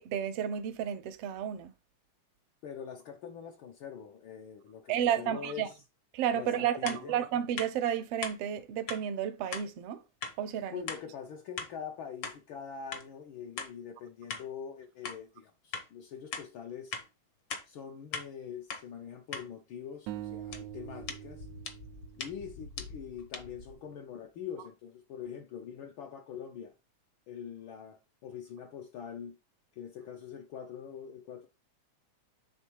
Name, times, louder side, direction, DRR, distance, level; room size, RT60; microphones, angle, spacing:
voice 1, 0.0-1.7 4.9-5.7 6.1-10.0 10.4-10.8, right 9 dB, 75° right, 1.5 m, -32 dB
voice 2, 2.6-5.8 6.3-7.2 10.7-16.9 17.6-21.5 22.2-26.7 27.3-29.4 29.8-31.5, left 7 dB, 80° left, 1.1 m, -44 dB
sound 1, 6.9-7.0 7.6-7.7 8.2-8.4 8.9-9.0 9.5-9.7 10.2-10.4 10.9-11.0 11.6-11.7 12.2-12.4 12.9-13.1 13.6-13.7 14.3-14.5 15.0-15.2 15.7-15.9 16.3-16.5 16.9-17.1 17.5-17.7 18.1-18.3 18.7-18.8 19.3-19.5 20.5-23.7, left 5 dB, 60° left, 1.2 m, -40 dB
sound 2, 20.1-23.3, right 13 dB, 90° right, 2.0 m, -44 dB
8.2 x 3.5 x 4.6 m
omnidirectional pair, 3.3 m